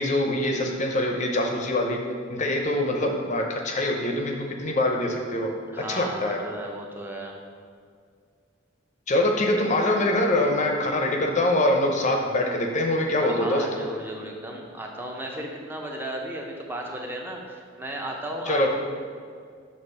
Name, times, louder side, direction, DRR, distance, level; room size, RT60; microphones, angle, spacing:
voice 1, 0.0-2.0 2.3-5.5 5.9-6.4 9.1-13.6 18.5-18.7, left 1 dB, 35° left, 2 dB, 0.6 m, -24 dB
voice 2, 5.7-7.4 13.3-18.7, right 1 dB, 10° right, 0 dB, 0.6 m, -35 dB
6.3 x 2.9 x 5.5 m, 2.1 s
head